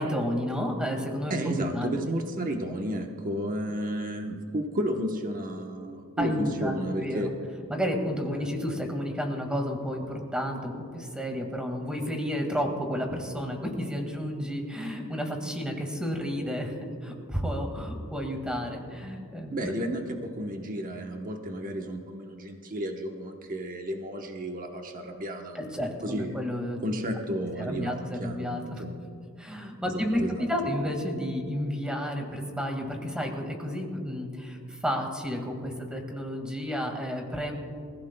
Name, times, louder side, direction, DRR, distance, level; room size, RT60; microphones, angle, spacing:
voice 1, 0.0-1.9 6.2-7.3 7.7-16.7 17.0-19.7 25.5-26.8 27.6-28.8 29.4-30.2 30.5-37.6, equal, 5° right, 2 dB, 1.9 m, -31 dB
voice 2, 1.3-7.3 19.5-26.4 26.8-29.0 29.9-30.5, right 1 dB, 40° right, 3 dB, 1.0 m, -32 dB
28.5 x 16.0 x 2.3 m, 2.5 s
head